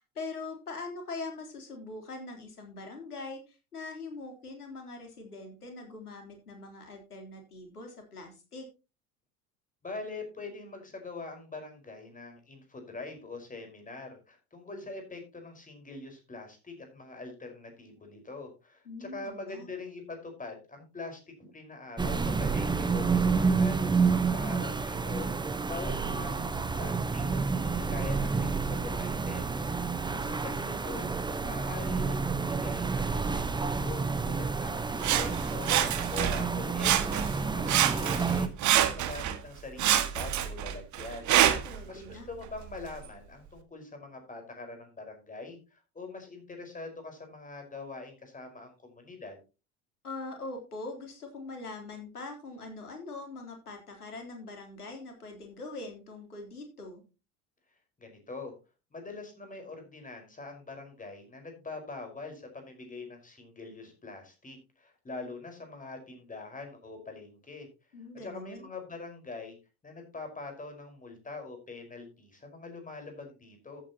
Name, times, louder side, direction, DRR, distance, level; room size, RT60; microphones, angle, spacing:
voice 1, 0.0-8.7 18.9-19.7 30.0-30.8 41.7-42.3 50.0-57.0 67.9-68.7, left 3 dB, 80° left, 4 dB, 3.7 m, -42 dB
voice 2, 9.8-25.3 25.7-29.7 30.1-31.1 31.4-38.5 38.7-41.3 41.9-49.4 58.0-58.5 58.9-67.7 68.2-69.6 69.8-73.8, left 3 dB, 15° left, 5 dB, 5.2 m, -44 dB
sound 1, 22.0-38.5, right 4 dB, 10° right, 1.1 m, -29 dB
Sawing, 35.0-36.5 36.8-37.4 37.7-39.4 39.8-41.8 42.4-42.5, right 11 dB, 40° right, 1.7 m, -26 dB
14.0 x 9.0 x 3.0 m, 0.30 s
figure-of-eight pair, 75°, 44 cm